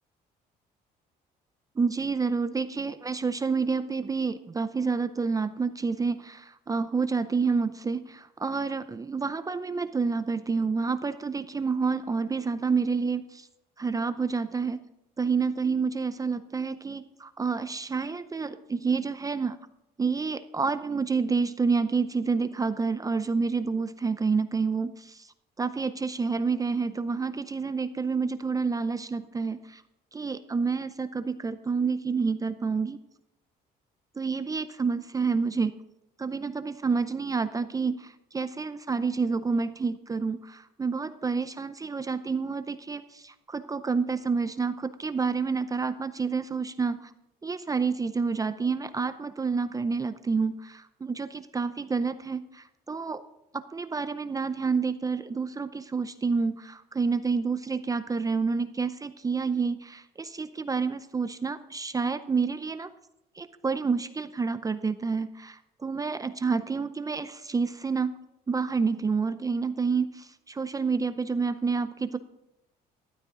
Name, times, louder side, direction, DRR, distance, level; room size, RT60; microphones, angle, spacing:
voice 1, 1.8-13.5 13.8-14.8 15.2-19.6 20.0-25.3 25.6-29.8 30.1-33.0 34.2-35.7 36.2-47.1 47.4-53.2 53.5-62.9 63.4-68.1 68.5-72.2, right 4 dB, 20° right, 11 dB, 0.6 m, -29 dB
13.0 x 11.5 x 3.8 m, 0.84 s
cardioid pair, 110°, 17 cm